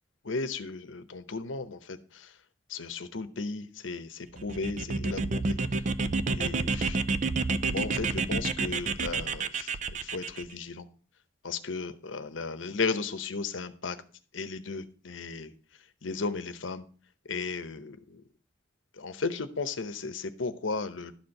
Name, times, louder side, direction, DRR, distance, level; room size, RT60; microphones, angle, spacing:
voice 1, 0.2-2.4 2.7-5.6 6.3-7.0 7.7-10.9 11.4-14.0 14.3-15.5 16.0-16.9 17.2-18.2 18.9-21.1, left 4 dB, 75° left, 0.9 m, -35 dB
sound 1, 4.4-10.4, right 3 dB, 40° right, 0.5 m, -29 dB
11.5 x 4.5 x 6.5 m
head